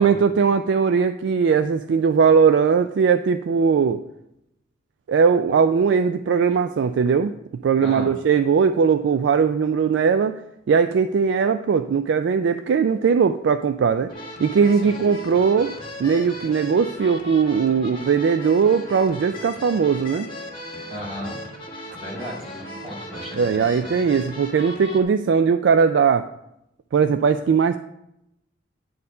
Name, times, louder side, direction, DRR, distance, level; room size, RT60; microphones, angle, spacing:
voice 1, 0.0-4.0 5.1-7.3 7.6-10.4 10.7-14.1 14.4-15.7 16.0-20.3 23.3-26.3 26.9-27.8, right 6 dB, 70° right, 10 dB, 0.3 m, -19 dB
voice 2, 7.8-8.1 14.8-15.0 20.9-21.4 22.0-24.2, equal, 40° right, -4 dB, 3.5 m, -35 dB
sound 1, 14.1-25.0, left 1 dB, 25° left, 1.5 m, -37 dB
9.4 x 4.4 x 5.4 m, 0.84 s
head